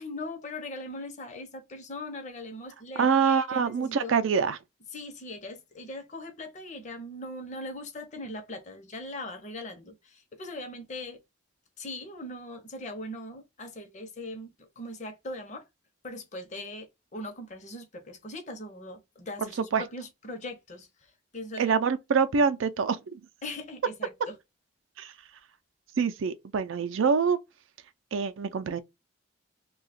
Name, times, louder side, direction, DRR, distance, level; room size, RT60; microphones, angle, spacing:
voice 1, 0.0-4.1 4.9-11.2 11.8-15.7 16.0-21.7 23.4-24.4, left 1 dB, 35° left, 0.7 m, -40 dB
voice 2, 3.0-4.6 19.4-19.8 21.6-23.2 25.0-25.1 26.0-27.4 28.1-28.8, right 6 dB, 85° right, 0.4 m, -25 dB
2.8 x 2.3 x 4.0 m
head